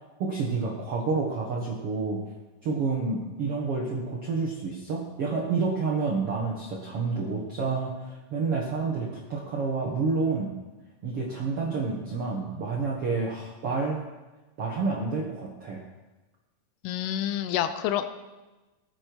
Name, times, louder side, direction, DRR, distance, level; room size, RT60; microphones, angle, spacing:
voice 1, 0.2-2.2 2.6-10.5 11.0-14.0 14.6-15.8, right 4 dB, 70° right, -2 dB, 1.4 m, -29 dB
voice 2, 16.8-18.1, left 10 dB, 80° left, 10 dB, 2.6 m, -28 dB
18.5 x 8.6 x 4.7 m, 1.2 s
omnidirectional pair, 4.8 m